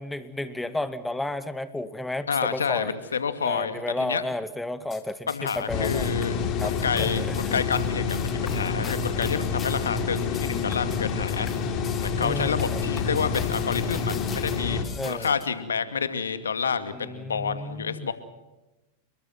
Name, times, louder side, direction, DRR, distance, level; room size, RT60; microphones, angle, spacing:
voice 1, 0.0-2.9 3.4-6.1 6.6-7.6 12.2-12.8 15.0-15.3 16.9-18.1, left 1 dB, 5° left, 11 dB, 2.2 m, -32 dB
voice 2, 2.3-4.2 5.3-11.5 12.0-18.1, left 6 dB, 85° left, 10 dB, 2.4 m, -29 dB
sound 1, 4.8-15.5, left 7 dB, 25° left, 3.2 m, -43 dB
sound 2, 5.7-14.8, left 5 dB, 40° left, 4.4 m, -28 dB
29.0 x 22.5 x 6.0 m, 1.0 s
hypercardioid pair, 100°, 0 cm